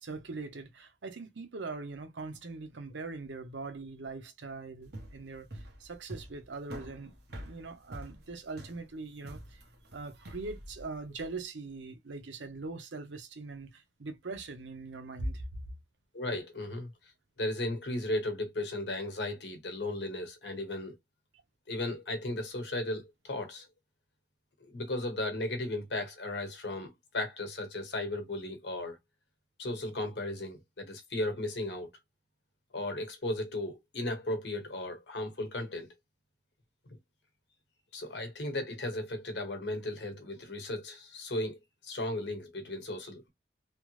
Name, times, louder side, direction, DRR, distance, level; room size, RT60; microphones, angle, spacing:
voice 1, 0.0-9.6 9.9-15.6, right 3 dB, 85° right, 0.8 m, -41 dB
sound 1, 4.8-11.4, right 1 dB, 60° right, 1.0 m, -46 dB
voice 2, 16.1-16.9 17.4-21.0 21.7-23.7 24.6-29.0 29.6-31.9 32.7-35.9 37.9-43.3, left 1 dB, 70° left, 1.1 m, -35 dB
3.3 x 2.1 x 3.1 m
head